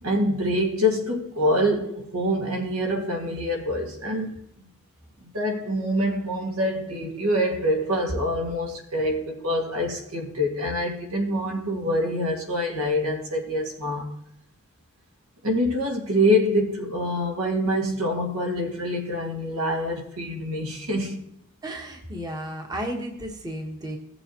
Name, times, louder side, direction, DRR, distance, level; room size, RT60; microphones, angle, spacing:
voice 1, 0.0-4.4 5.2-14.1 15.4-21.2, equal, 75° right, 1.9 m, -25 dB
voice 2, 21.6-24.0, equal, 20° right, 1.1 m, -33 dB
17.0 x 6.9 x 2.9 m
head